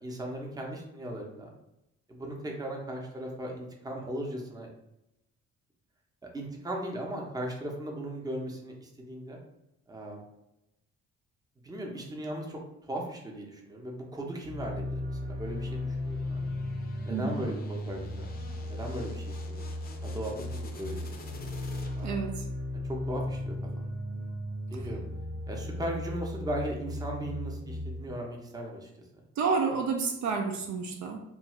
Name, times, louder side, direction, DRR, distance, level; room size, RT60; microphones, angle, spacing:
voice 1, 0.0-1.5 2.1-4.7 6.2-9.4 9.9-10.2 11.6-12.6 12.9-16.4 17.1-18.3 18.6-19.7 20.0-21.1 22.0-22.2 22.8-23.8 24.7-25.0 25.5-28.9, right 1 dB, 15° right, 0 dB, 0.6 m, -37 dB
sound 1, 14.4-28.1, left 1 dB, 85° right, 0.8 m, -36 dB
sound 2, 15.4-22.3, left 3 dB, 30° left, 0.5 m, -50 dB
voice 2, 17.1-17.4 22.0-22.5 24.7-24.8 29.4-31.2, right 5 dB, 65° right, 3 dB, 0.5 m, -30 dB
2.5 x 2.4 x 3.0 m, 0.87 s
cardioid pair, 90°, 30 cm